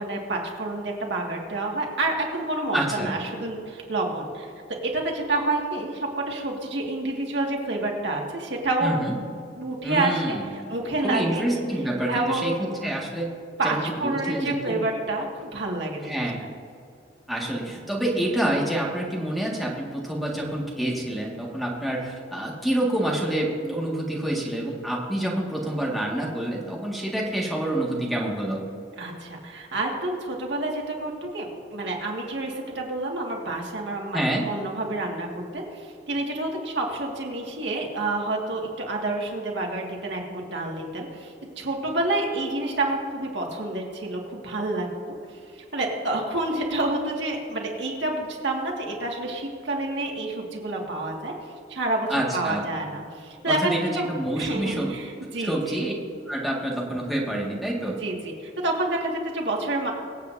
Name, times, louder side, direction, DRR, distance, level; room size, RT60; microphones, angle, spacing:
voice 1, 0.0-4.5 4.8-8.9 9.6-11.4 12.1-12.5 13.6-16.2 29.0-45.2 45.7-51.3 51.7-54.1 54.4-55.8 57.9-59.9, right 2 dB, 65° right, -1 dB, 1.9 m, -28 dB
voice 2, 2.7-3.2 8.8-9.1 9.8-10.5 11.0-13.3 13.6-14.8 16.0-16.5 17.3-28.6 34.1-34.5 52.1-52.6 53.4-54.9 55.4-55.9 56.3-58.0, right 1 dB, ahead, -3 dB, 1.8 m, -27 dB
24.5 x 8.3 x 2.7 m, 2.4 s
head